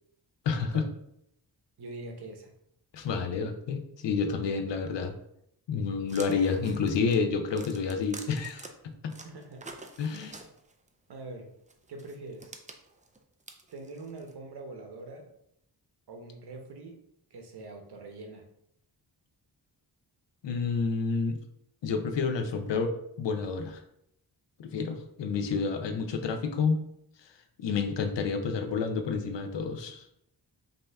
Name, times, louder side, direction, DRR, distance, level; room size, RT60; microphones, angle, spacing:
voice 1, 0.4-0.9 2.9-5.1 5.7-8.7 9.0-9.1 10.0-10.4 20.4-21.4 21.8-23.8 24.6-26.8 27.2-27.3 27.6-30.0, left 5 dB, 90° left, 7 dB, 0.7 m, -29 dB
voice 2, 1.8-2.5 9.2-9.7 11.1-11.5 11.9-12.5 13.7-15.3 16.1-17.0 17.3-18.4, right 2 dB, 65° right, 3 dB, 1.0 m, -43 dB
sound 1, 6.1-8.7 9.1-10.9 11.7-14.3, right 3 dB, 20° right, 0.4 m, -47 dB
5.3 x 2.8 x 3.3 m, 0.75 s
wide cardioid pair, 145°, 42 cm